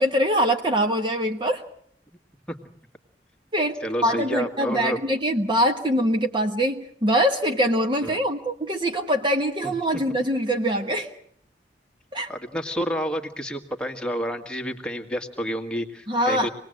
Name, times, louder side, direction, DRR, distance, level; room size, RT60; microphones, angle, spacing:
voice 1, 0.0-1.6 3.5-11.1 12.1-12.3 16.1-16.5, equal, 25° right, 5 dB, 1.2 m, -23 dB
voice 2, 3.8-5.0 8.0-8.2 9.6-9.7 12.3-16.5, equal, 5° left, 4 dB, 2.0 m, -29 dB
26.5 x 20.0 x 7.9 m, 0.65 s
head